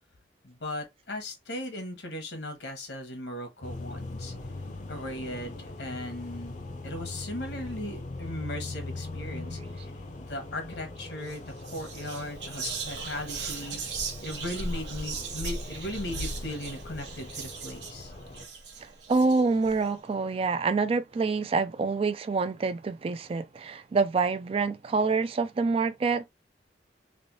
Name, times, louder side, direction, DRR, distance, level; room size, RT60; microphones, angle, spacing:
voice 1, 0.4-4.3 4.9-6.6 6.8-9.9 10.2-13.8 14.2-18.1, left 1 dB, 80° left, 1.1 m, -37 dB
sound 1, 3.6-18.4, left 2 dB, 45° left, 0.5 m, -41 dB
Whispering, 11.2-11.4 11.6-19.7, right 3 dB, 90° right, 1.0 m, -37 dB
voice 2, 19.1-26.2, right 4 dB, 35° right, 0.3 m, -26 dB
3.3 x 2.6 x 2.7 m
head